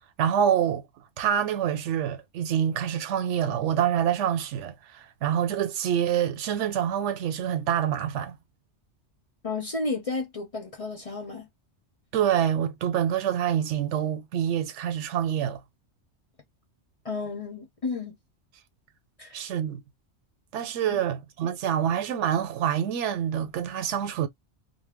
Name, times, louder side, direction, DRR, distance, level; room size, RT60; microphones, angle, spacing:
voice 1, 0.2-0.8 1.2-8.4 12.1-15.6 19.3-19.8 20.5-24.3, right 9 dB, 85° right, 0.9 m, -26 dB
voice 2, 9.4-11.5 17.0-18.1 19.2-19.4 20.9-21.0, left 3 dB, 40° left, 0.6 m, -32 dB
2.2 x 2.1 x 3.4 m
omnidirectional pair, 1.2 m